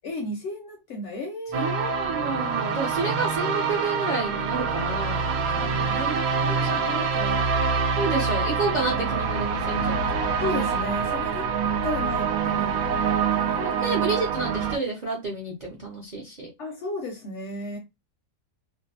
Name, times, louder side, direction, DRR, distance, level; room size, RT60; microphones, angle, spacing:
voice 1, 0.0-1.7 5.5-7.5 10.4-11.5 11.8-13.7 16.6-17.8, left 2 dB, 65° left, 0.7 m, -34 dB
voice 2, 1.5-6.7 8.0-10.2 13.6-16.5, right 3 dB, 50° right, 0.5 m, -30 dB
sound 1, 1.5-14.8, right 5 dB, 75° right, 1.0 m, -25 dB
2.6 x 2.1 x 2.7 m
omnidirectional pair, 1.6 m